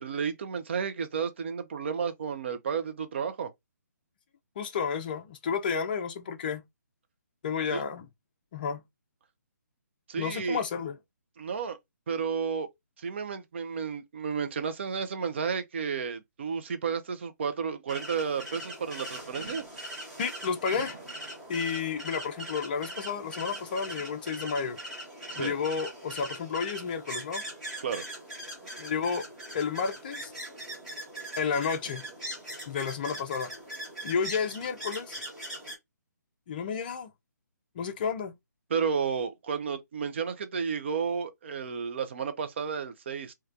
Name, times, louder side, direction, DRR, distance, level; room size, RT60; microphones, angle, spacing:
voice 1, 0.0-3.5 7.7-7.8 10.1-10.6 11.4-11.8 12.1-12.7 13.0-19.6 25.3-25.5 27.8-28.0 38.7-43.3, right 6 dB, 40° right, 0.4 m, -32 dB
voice 2, 4.6-6.6 7.4-8.1 8.5-8.8 10.2-11.0 20.2-21.0 21.5-24.8 25.4-27.4 28.8-29.3 29.5-30.3 31.4-32.0 32.7-33.5 34.0-35.2 36.5-37.1 37.8-38.3, left 6 dB, 30° left, 0.5 m, -31 dB
sound 1, 17.9-35.7, right 1 dB, 5° right, 1.1 m, -41 dB
3.1 x 2.2 x 2.4 m
figure-of-eight pair, 140°, 10 cm